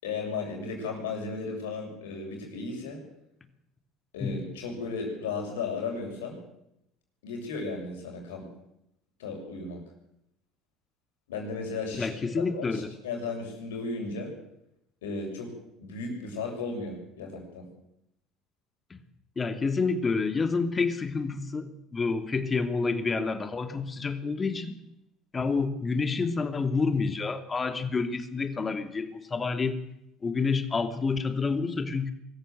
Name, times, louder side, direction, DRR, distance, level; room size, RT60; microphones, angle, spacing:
voice 1, 0.0-3.0 4.1-6.4 7.2-8.5 9.2-9.8 11.3-12.1 12.4-14.3 15.0-15.5 15.8-17.7, left 4 dB, 80° left, 1 dB, 7.0 m, -35 dB
voice 2, 12.0-12.9 19.4-24.7 25.3-29.8 30.2-32.1, left 4 dB, 30° left, 8 dB, 2.8 m, -28 dB
23.5 x 14.0 x 7.9 m, 0.82 s
hypercardioid pair, 65°, 0 cm